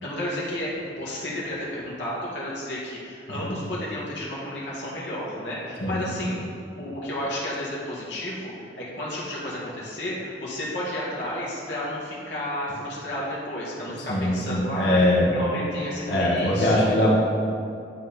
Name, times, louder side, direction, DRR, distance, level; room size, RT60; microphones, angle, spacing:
voice 1, 0.0-6.4 6.8-15.0 15.3-16.9, left 1 dB, 85° left, -6 dB, 1.8 m, -32 dB
voice 2, 5.8-6.3 14.0-15.3 16.1-17.1, left 1 dB, 65° left, -5 dB, 1.7 m, -22 dB
10.5 x 4.1 x 4.1 m, 2.4 s
head